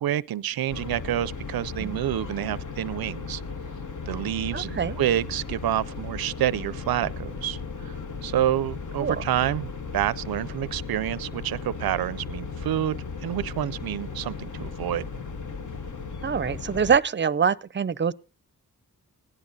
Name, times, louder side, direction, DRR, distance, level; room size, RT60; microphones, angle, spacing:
voice 1, 0.0-3.4 4.1-15.1, right 12 dB, 75° right, 0.5 m, -28 dB
sound 1, 0.7-17.0, left 4 dB, 55° left, 1.3 m, -36 dB
voice 2, 4.5-5.0 9.0-9.2 16.2-18.1, right 6 dB, 30° right, 0.6 m, -24 dB
17.5 x 10.5 x 4.0 m
wide cardioid pair, 85°, 36 cm